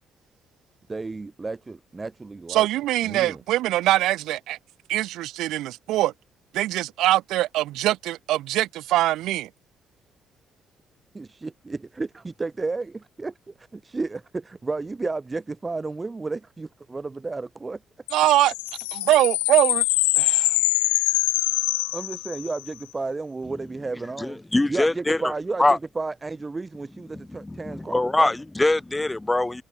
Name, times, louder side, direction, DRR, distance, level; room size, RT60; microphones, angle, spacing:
voice 1, 0.9-2.7 3.0-3.4 11.1-17.8 21.9-24.4 24.7-28.3, right 3 dB, 30° right, 4.5 m, -32 dB
voice 2, 2.5-4.6 4.9-6.1 6.5-9.5 18.1-18.5 18.9-19.8 20.2-20.5, right 15 dB, 75° right, 0.9 m, -22 dB
sound 1, 18.1-22.7, left 26 dB, 90° left, 0.6 m, -24 dB
voice 3, 24.2-25.3 25.6-25.8 27.3-29.6, left 2 dB, 15° left, 1.7 m, -23 dB
hypercardioid pair, 50°, 0 cm